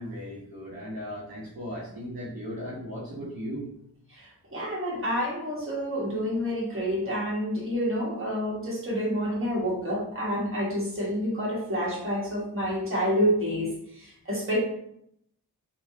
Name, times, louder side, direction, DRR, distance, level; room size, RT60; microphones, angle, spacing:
voice 1, 0.0-3.7, equal, 65° right, -7 dB, 1.0 m, -37 dB
voice 2, 4.5-13.7 14.0-14.6, equal, 35° right, -5 dB, 1.3 m, -28 dB
3.2 x 2.2 x 2.7 m, 0.73 s
cardioid pair, 55°, 38 cm